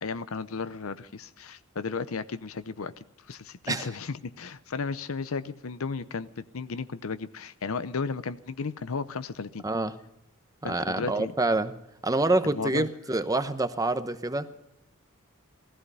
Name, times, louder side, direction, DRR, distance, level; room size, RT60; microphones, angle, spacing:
voice 1, 0.0-9.6 10.6-11.3 12.4-12.9, left 4 dB, 80° left, 13 dB, 0.7 m, -34 dB
voice 2, 9.6-9.9 10.6-11.7 12.0-14.5, right 2 dB, 15° right, 11 dB, 0.9 m, -27 dB
17.5 x 15.0 x 5.5 m, 0.85 s
head